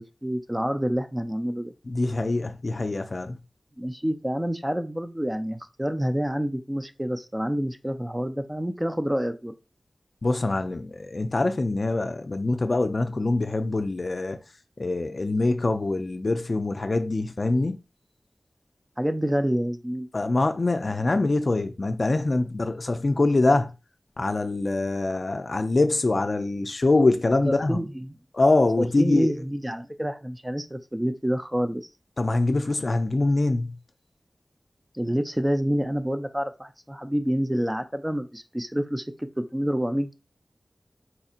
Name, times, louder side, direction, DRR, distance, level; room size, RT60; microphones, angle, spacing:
voice 1, 0.0-1.7 3.8-9.5 19.0-20.1 27.4-28.2 28.8-31.8 34.9-40.1, equal, 10° right, 0.4 m, -28 dB
voice 2, 1.9-3.3 10.2-14.4 14.8-17.8 20.1-23.7 24.2-27.8 28.3-29.3 32.2-33.7, left 2 dB, 55° left, 0.4 m, -24 dB
4.2 x 2.7 x 2.4 m
wide cardioid pair, 65°, 0 cm